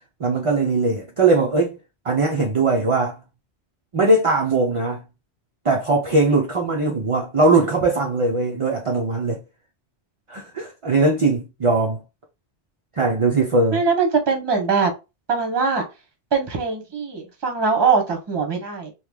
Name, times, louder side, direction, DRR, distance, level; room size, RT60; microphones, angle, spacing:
voice 1, 0.2-1.8 2.0-3.2 3.9-5.0 5.6-9.4 10.3-12.0 12.9-13.8, right 3 dB, 45° right, 0.4 m, -20 dB
voice 2, 13.7-14.9 15.3-15.8 16.3-18.9, right 5 dB, 25° right, 0.8 m, -21 dB
3.1 x 2.3 x 3.5 m
omnidirectional pair, 1.2 m